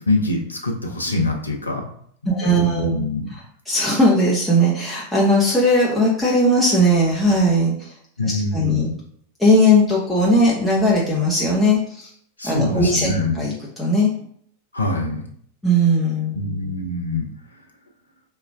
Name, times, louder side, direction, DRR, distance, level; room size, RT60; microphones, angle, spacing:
voice 1, 0.1-1.9 2.2-3.3 8.2-8.9 12.4-13.5 14.7-15.2 16.3-17.3, left 2 dB, 80° left, 1 dB, 0.6 m, -24 dB
voice 2, 2.3-3.0 3.7-7.9 8.2-8.9 9.4-12.1 12.4-13.1 13.4-14.1 15.6-16.4, equal, 5° left, -6 dB, 0.7 m, -18 dB
3.7 x 2.2 x 3.4 m, 0.64 s
figure-of-eight pair, 90°, 0 cm